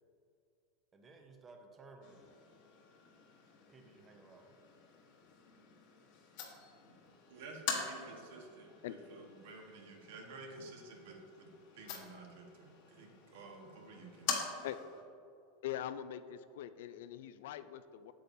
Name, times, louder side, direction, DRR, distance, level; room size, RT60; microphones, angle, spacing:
voice 1, 0.9-2.3 3.7-4.6, right 3 dB, 15° right, 4 dB, 0.6 m, -57 dB
sound 1, 2.0-15.0, left 6 dB, 50° left, 1.1 m, -46 dB
voice 2, 7.3-14.3, right 3 dB, 70° right, 2 dB, 1.3 m, -52 dB
voice 3, 15.6-18.1, left 11 dB, 70° left, 12 dB, 0.3 m, -42 dB
8.5 x 6.7 x 2.6 m, 2.5 s
supercardioid pair, 160°, 0 cm